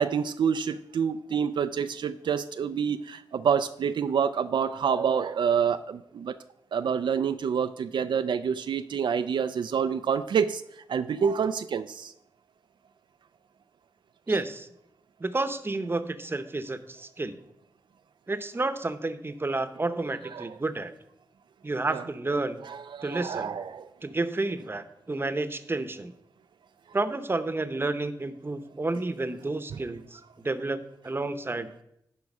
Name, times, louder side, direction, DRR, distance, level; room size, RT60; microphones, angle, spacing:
voice 1, 0.0-6.4 6.7-10.6 10.9-12.1 20.2-20.6 21.9-22.0 22.6-23.9 29.7-29.8, right 7 dB, 80° right, 10 dB, 0.4 m, -27 dB
voice 2, 14.3-14.7 15.2-17.4 18.3-20.9 21.6-22.6 23.0-23.5 24.0-26.1 26.9-30.2 30.4-31.8, right 2 dB, 30° right, 11 dB, 0.8 m, -30 dB
11.0 x 4.7 x 5.4 m, 0.77 s
cardioid pair, 65°, 8 cm